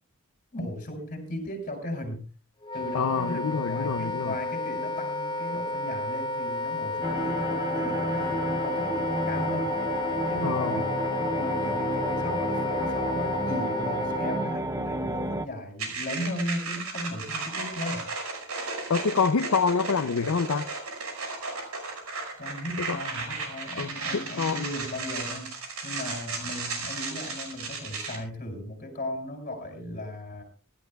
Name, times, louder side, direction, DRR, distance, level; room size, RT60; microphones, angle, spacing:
voice 1, 0.5-2.2 2.7-9.7 10.3-18.1 22.4-25.5 25.8-30.4, left 1 dB, 40° left, 7.3 m, -37 dB
Wind instrument woodwind instrument, 2.6-14.6, left 3 dB, 20° left, 0.7 m, -31 dB
voice 2, 2.9-4.3 10.4-10.7 18.9-20.7 22.8-23.0 23.8-24.6, left 5 dB, 75° left, 0.5 m, -26 dB
sound 1, 7.0-15.5, right 1 dB, 15° right, 0.6 m, -31 dB
sound 2, 15.8-28.2, right 3 dB, 80° right, 5.6 m, -35 dB
25.5 x 13.0 x 2.3 m
head